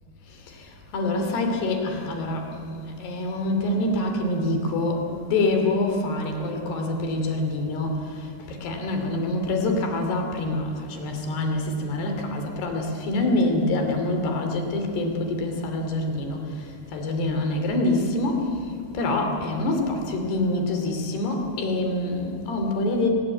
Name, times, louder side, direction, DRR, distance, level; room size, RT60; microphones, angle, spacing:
voice 1, 0.3-23.1, left 2 dB, 70° left, 4 dB, 4.8 m, -26 dB
23.5 x 19.5 x 9.0 m, 2.4 s
omnidirectional pair, 4.9 m